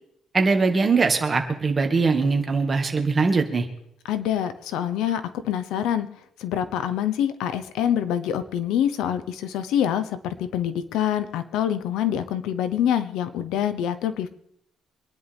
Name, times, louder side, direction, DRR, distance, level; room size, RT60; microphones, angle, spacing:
voice 1, 0.3-3.7, right 4 dB, 25° right, 4 dB, 2.0 m, -21 dB
voice 2, 4.1-6.1 6.4-14.3, left 10 dB, 90° left, 12 dB, 1.0 m, -25 dB
25.0 x 11.0 x 3.6 m, 0.76 s
cardioid pair, 140°, 0 cm